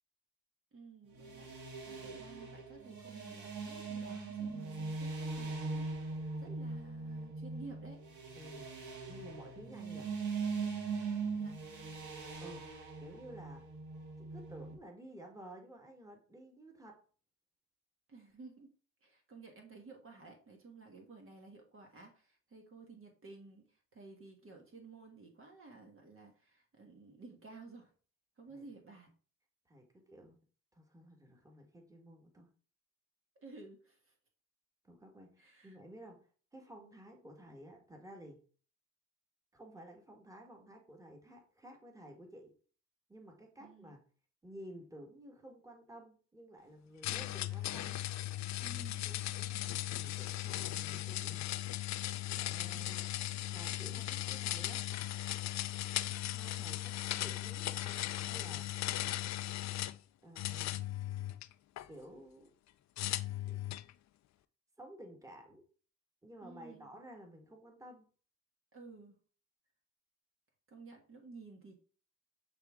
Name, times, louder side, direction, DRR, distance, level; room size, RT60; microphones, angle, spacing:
voice 1, 0.7-1.5 1.9-8.0 11.2-11.6 18.1-18.7 19.0-27.9 28.4-29.1 33.3-34.1 35.4-35.8 43.6-44.0 47.1-47.3 48.6-49.1 52.7-53.1 66.4-66.9 68.7-69.2 70.7-71.8, right 3 dB, 45° right, 2 dB, 1.5 m, -54 dB
Bass-Middle, 1.1-14.7, right 4 dB, 75° right, 1.9 m, -41 dB
voice 2, 8.3-8.8 9.1-10.1 12.4-12.7 13.0-13.7 14.2-17.0 28.5-28.7 29.7-30.4 30.7-32.5 34.8-38.4 39.5-42.5 43.1-44.0 44.4-48.1 49.1-51.5 52.3-53.1 53.5-54.8 56.3-58.7 60.2-60.8 61.9-62.5 63.5-63.6 64.8-65.6 66.2-68.1, right 1 dB, 10° right, 1 dB, 1.7 m, -53 dB
sound 1, 47.0-60.0 60.4-61.9 63.0-63.9, left 14 dB, 65° left, 0.5 m, -37 dB
7.9 x 3.5 x 3.7 m, 0.40 s
cardioid pair, 90°, 30 cm